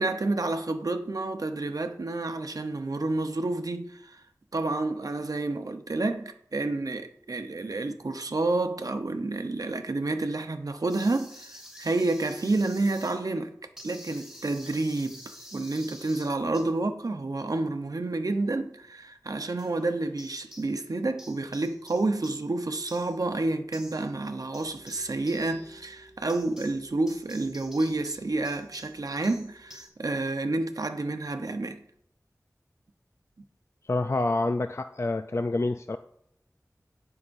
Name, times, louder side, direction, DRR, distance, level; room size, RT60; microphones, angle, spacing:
voice 1, 0.0-4.2 4.5-13.5 13.8-31.8, right 2 dB, 75° right, 0.8 m, -29 dB
sound 1, 10.9-13.2 13.8-16.7 19.6-19.8 20.2-20.9 21.2-29.9, equal, 5° right, 3.8 m, -49 dB
voice 2, 33.9-36.0, left 2 dB, 45° left, 0.4 m, -27 dB
17.5 x 5.8 x 2.6 m
wide cardioid pair, 45°, 6 cm